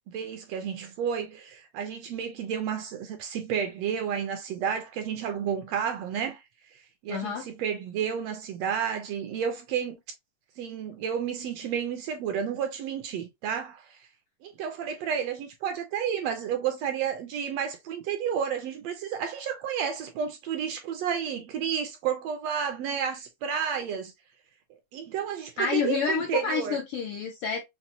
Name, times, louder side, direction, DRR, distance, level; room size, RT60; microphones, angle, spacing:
voice 1, 0.1-6.4 7.0-10.0 10.6-13.8 14.4-24.1 24.9-26.8, right 8 dB, 75° right, 1.6 m, -31 dB
voice 2, 7.1-7.5 25.6-27.6, left 5 dB, 80° left, 1.3 m, -28 dB
5.9 x 2.2 x 2.7 m
omnidirectional pair, 3.3 m